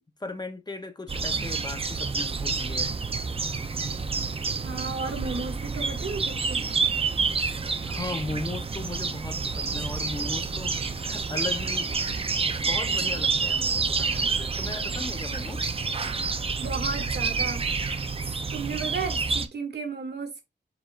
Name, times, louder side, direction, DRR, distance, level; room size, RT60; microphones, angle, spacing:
voice 1, 0.2-2.9 7.8-12.0 12.5-15.7, left 2 dB, 20° left, 0.6 m, -37 dB
sound 1, 1.1-19.5, right 4 dB, 30° right, 0.5 m, -28 dB
voice 2, 4.6-6.6 16.6-17.6 18.5-20.3, right 4 dB, 65° right, 1.3 m, -33 dB
5.0 x 4.3 x 2.4 m
wide cardioid pair, 130°, 19 cm